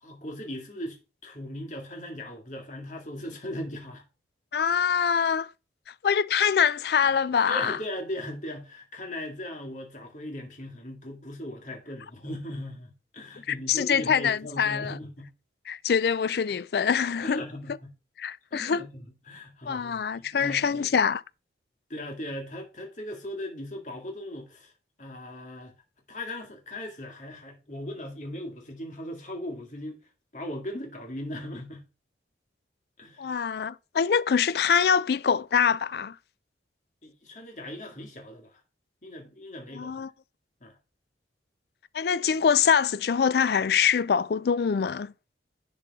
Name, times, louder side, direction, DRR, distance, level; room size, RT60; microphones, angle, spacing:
voice 1, 0.0-4.0 7.5-15.3 17.2-17.9 18.5-20.0 20.3-20.9 21.9-24.7 25.0-25.7 26.1-30.0 30.3-31.9 33.0-33.3 37.0-38.6 39.0-40.0 40.6-40.8, left 1 dB, 45° left, 2.1 m, -38 dB
voice 2, 4.5-5.5 6.0-7.8 13.5-15.0 15.7-17.4 18.2-18.8 19.7-21.2 33.2-36.1 39.7-40.1 41.9-45.1, left 7 dB, 60° left, 0.4 m, -24 dB
10.5 x 5.3 x 3.6 m
head